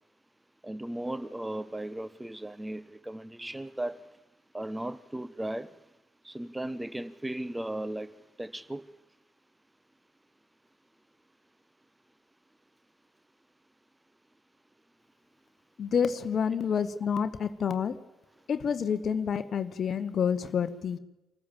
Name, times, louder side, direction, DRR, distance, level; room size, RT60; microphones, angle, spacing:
voice 1, 0.6-4.1 4.5-5.7 6.2-8.1 8.4-8.9, right 1 dB, 10° right, 0.7 m, -36 dB
voice 2, 15.8-18.0 18.5-21.0, left 7 dB, 50° left, 0.9 m, -28 dB
25.5 x 14.5 x 7.3 m
hypercardioid pair, 45°, 0 cm